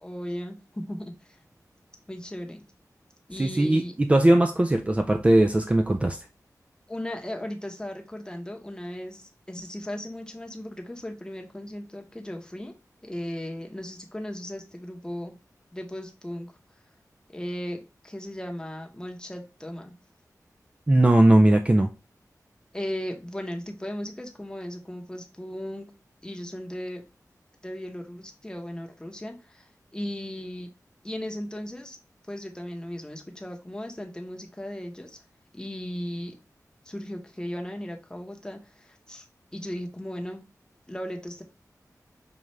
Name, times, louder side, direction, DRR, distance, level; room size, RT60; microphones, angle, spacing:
voice 1, 0.0-1.4 2.1-2.6 3.3-3.9 6.9-12.7 13.0-15.3 15.7-16.5 17.3-19.9 22.7-25.9 26.2-27.0 27.6-29.7 29.9-30.7 31.0-32.0 32.3-35.2 35.5-36.4 36.9-39.3 39.5-40.4 40.9-41.4, left 1 dB, 10° left, 3 dB, 0.8 m, -36 dB
voice 2, 3.4-6.2 20.9-21.9, right 1 dB, 20° right, 5 dB, 0.3 m, -19 dB
5.3 x 2.4 x 3.1 m, 0.30 s
wide cardioid pair, 75°, 7 cm